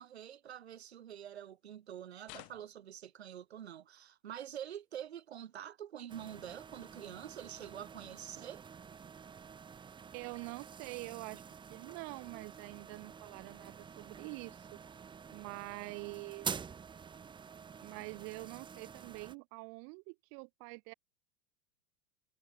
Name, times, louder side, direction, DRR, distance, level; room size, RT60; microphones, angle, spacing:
voice 1, 0.0-8.6, right 10 dB, 75° right, 2.3 m, -46 dB
sound 1, 2.2-2.9 6.0-6.1, left 37 dB, 50° left, 1.8 m, -52 dB
sound 2, 6.1-19.4, right 6 dB, 15° right, 0.8 m, -48 dB
voice 2, 10.1-14.8 15.3-16.5 17.8-20.9, right 40 dB or more, 50° right, 1.3 m, -46 dB
hypercardioid pair, 95°, 32 cm